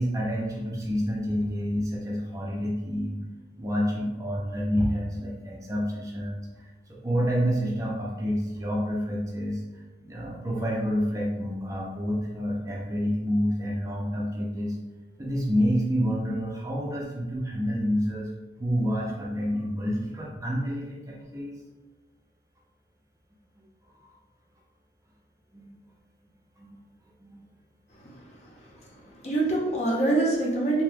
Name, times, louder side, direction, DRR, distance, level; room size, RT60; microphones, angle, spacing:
voice 1, 0.0-3.2 3.6-9.6 10.0-14.8 15.2-18.3 18.6-21.6 25.5-25.7 26.6-26.8 27.2-27.4 28.9-29.0, equal, 15° right, -3 dB, 0.4 m, -28 dB
voice 2, 28.0-28.5 29.1-30.8, right 2 dB, 35° left, -3 dB, 0.7 m, -26 dB
2.8 x 2.2 x 3.2 m, 1.2 s
head